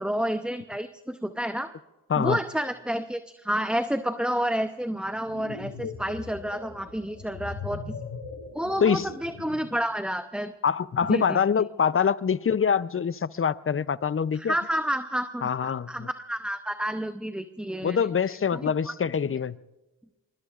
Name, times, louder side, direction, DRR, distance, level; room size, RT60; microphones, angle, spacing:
voice 1, 0.0-1.7 2.2-8.0 8.5-10.5 11.1-11.7 14.3-18.0 18.5-18.9, equal, ahead, 0.7 m, -30 dB
sound 1, 5.1-9.8, left 4 dB, 65° left, 5.8 m, -39 dB
voice 2, 10.6-14.5 15.4-16.1 17.8-19.6, left 7 dB, 30° left, 0.6 m, -25 dB
24.5 x 24.0 x 2.5 m
cardioid pair, 45°, 45 cm